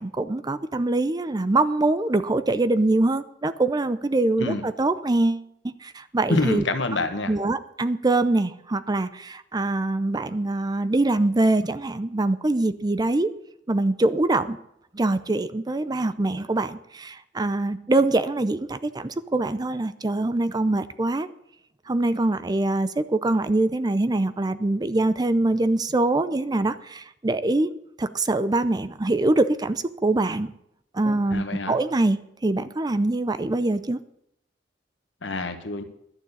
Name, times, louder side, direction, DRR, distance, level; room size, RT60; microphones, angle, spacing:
voice 1, 0.0-6.6 7.3-13.3 13.7-14.6 14.9-21.3 21.9-27.7 28.0-30.5 30.9-32.2 32.4-34.0, right 2 dB, 20° right, 13 dB, 0.5 m, -24 dB
voice 2, 6.3-7.3 31.3-31.8 35.2-35.8, left 2 dB, 90° left, 8 dB, 1.4 m, -26 dB
11.5 x 6.6 x 8.6 m, 0.76 s
head